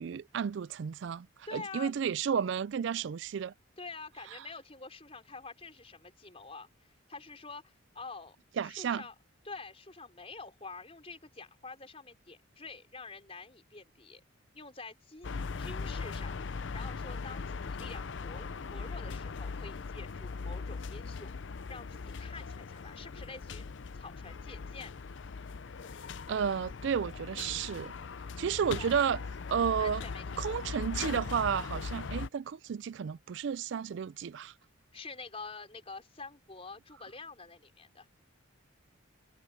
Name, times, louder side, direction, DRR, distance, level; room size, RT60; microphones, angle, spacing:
voice 1, 0.0-1.3 1.5-3.5 8.6-9.0 26.3-27.9 28.4-29.2 29.5-30.0 30.4-34.5, right 7 dB, 60° right, 0.3 m, -32 dB
voice 2, 1.5-1.9 3.8-9.1 9.4-14.2 14.5-16.4 16.7-21.3 21.7-23.7 23.9-25.0 28.8-29.1 29.8-30.6 34.9-38.1, left 4 dB, 30° left, 4.4 m, -47 dB
sound 1, 15.2-32.3, left 4 dB, 60° left, 0.5 m, -40 dB
head